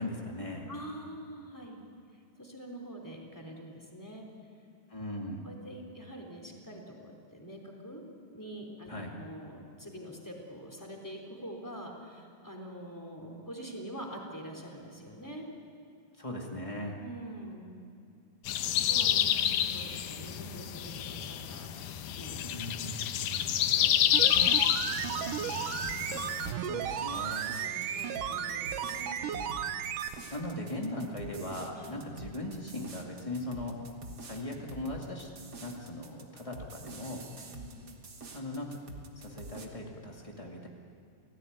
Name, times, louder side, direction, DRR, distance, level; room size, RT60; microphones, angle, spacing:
voice 1, 0.0-0.7 4.9-5.5 8.9-9.1 16.2-16.9 22.4-23.5 26.7-27.5 30.3-33.8 34.2-35.3 35.6-37.3 38.3-38.8 39.1-40.7, left 1 dB, 50° left, -1 dB, 0.4 m, -39 dB
voice 2, 0.7-1.8 2.4-4.3 5.4-8.0 8.3-8.9 9.2-15.5 17.0-17.8 18.6-22.4 23.5-24.0 25.1-25.2 26.5-26.7 27.6-29.7 31.8-31.9 37.4-37.8, equal, 5° left, 1 dB, 2.8 m, -45 dB
sound 1, 18.5-26.5, left 10 dB, 85° left, 1.8 m, -29 dB
sound 2, 24.1-30.2 30.4-30.5, right 9 dB, 75° right, 1.9 m, -34 dB
sound 3, 25.8-39.7, right 2 dB, 60° right, 1.0 m, -47 dB
28.5 x 18.0 x 9.4 m, 2.5 s
omnidirectional pair, 5.0 m